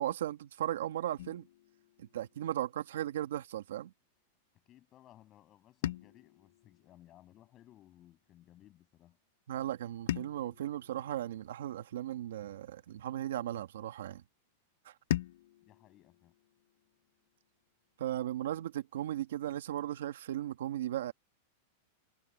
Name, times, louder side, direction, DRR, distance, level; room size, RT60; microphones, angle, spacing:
voice 1, 0.0-1.5 2.0-3.9 9.5-14.2 14.9-15.0 18.0-21.1, right 12 dB, 85° right, 1.7 m, -36 dB
sound 1, 1.2-3.4 5.8-8.2 10.1-12.6 15.1-17.6, left 12 dB, 70° left, 1.0 m, -42 dB
voice 2, 4.7-9.2 15.7-16.3, left 13 dB, 25° left, 7.7 m, -60 dB
supercardioid pair, 160°, 0 cm